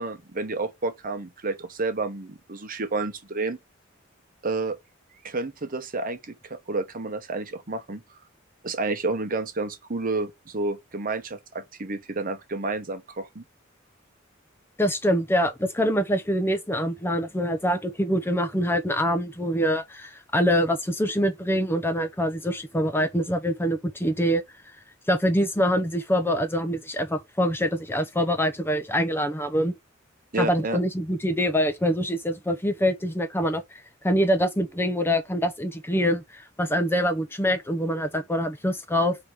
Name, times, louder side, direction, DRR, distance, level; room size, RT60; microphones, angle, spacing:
voice 1, 0.0-3.6 4.4-4.8 5.2-8.0 8.6-13.4 30.3-30.8, right 3 dB, 45° right, 0.9 m, -30 dB
voice 2, 14.8-24.4 25.1-29.7 30.4-39.2, equal, 10° left, 0.7 m, -25 dB
4.7 x 3.6 x 5.6 m
head